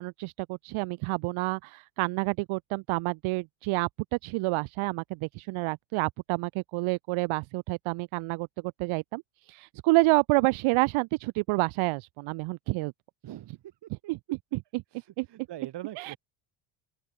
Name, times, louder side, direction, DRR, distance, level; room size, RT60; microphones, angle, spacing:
voice 1, 0.0-8.5 8.8-12.9 14.1-14.2 14.5-14.8 15.2-15.3 16.0-16.1, right 24 dB, 75° right, 1.9 m, -28 dB
voice 2, 13.2-13.6 14.0-14.1 14.9-16.2, right 13 dB, 55° right, 5.4 m, -43 dB
open air
cardioid pair, 115°, 49 cm